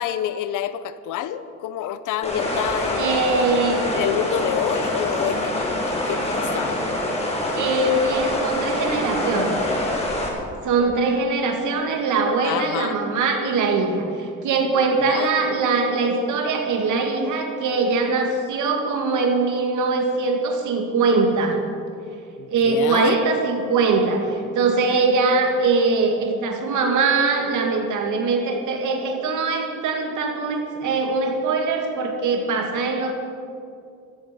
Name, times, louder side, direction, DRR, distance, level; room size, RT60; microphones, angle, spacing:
voice 1, 0.0-3.3 3.9-6.8 12.4-13.0 15.0-15.3 22.4-23.2, left 11 dB, 85° left, 14 dB, 0.8 m, -28 dB
sound 1, 2.2-10.3, left 1 dB, 20° left, 4.4 m, -25 dB
voice 2, 3.0-3.8 7.5-9.6 10.6-21.6 22.5-33.1, right 4 dB, 80° right, 3 dB, 2.6 m, -22 dB
15.5 x 14.5 x 5.5 m, 2.5 s
cardioid pair, 90°, 30 cm